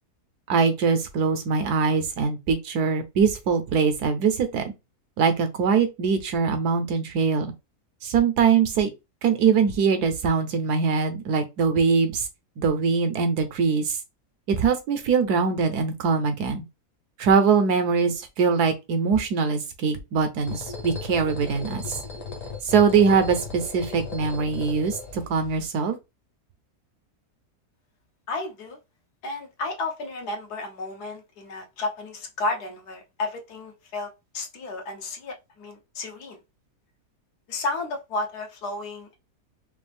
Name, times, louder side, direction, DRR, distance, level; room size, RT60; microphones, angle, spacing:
voice 1, 0.5-4.6 5.2-7.5 8.0-8.9 9.2-12.3 12.6-14.0 14.5-16.6 17.2-21.8 22.6-26.0, right 5 dB, 75° right, 1.4 m, -22 dB
sound 1, 20.4-25.6, left 5 dB, 55° left, 1.4 m, -36 dB
voice 2, 28.3-28.8 29.2-36.4 37.5-39.2, left 2 dB, 75° left, 1.6 m, -32 dB
5.2 x 2.5 x 3.5 m
omnidirectional pair, 1.7 m